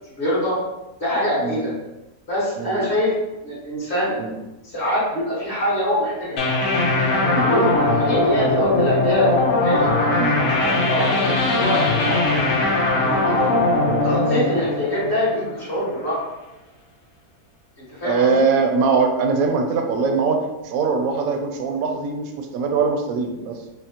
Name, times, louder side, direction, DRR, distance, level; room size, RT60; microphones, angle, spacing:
voice 1, 0.2-0.5 1.0-1.7 2.3-3.1 3.4-4.1 4.7-6.4 7.2-9.9 10.4-12.4 13.0-13.5 14.0-16.2 17.8-18.4, equal, 45° left, -8 dB, 1.9 m, -24 dB
sound 1, 6.4-15.7, left 2 dB, 65° left, 1.2 m, -20 dB
voice 2, 18.0-23.6, right 4 dB, 75° right, 3 dB, 1.0 m, -22 dB
5.5 x 2.1 x 2.9 m, 0.99 s
omnidirectional pair, 1.6 m